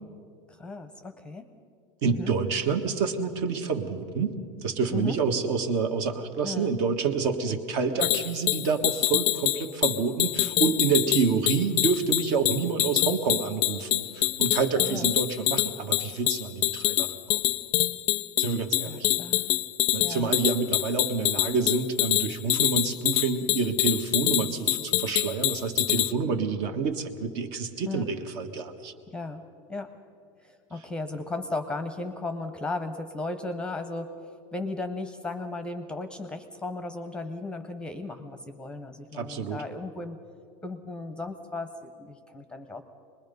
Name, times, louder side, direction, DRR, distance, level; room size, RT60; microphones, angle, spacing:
voice 1, 0.5-1.5 2.1-2.3 4.9-5.2 6.4-6.7 14.9-15.1 18.9-19.4 20.0-20.3 27.9-28.1 29.1-29.4 29.7-29.9 30.4-40.2 40.6-42.8, left 2 dB, 5° left, 8 dB, 0.8 m, -35 dB
voice 2, 2.0-4.4 4.6-17.4 18.4-19.1 19.9-28.9 39.1-39.6, right 5 dB, 55° right, 7 dB, 1.5 m, -28 dB
sound 1, 8.0-26.1, left 18 dB, 50° left, 0.5 m, -26 dB
24.5 x 20.5 x 5.4 m, 2.3 s
supercardioid pair, 160°, 17 cm